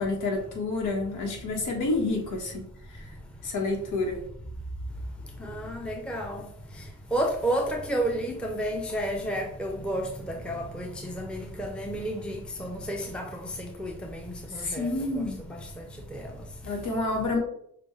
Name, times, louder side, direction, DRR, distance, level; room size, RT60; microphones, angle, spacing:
voice 1, 0.0-3.1 3.4-4.2 14.5-15.4 16.6-17.4, left 2 dB, 85° left, 1.2 m, -29 dB
voice 2, 5.2-14.9 15.5-16.7, right 1 dB, 5° left, 0.6 m, -32 dB
6.7 x 2.3 x 3.1 m
cardioid pair, 90°, 30 cm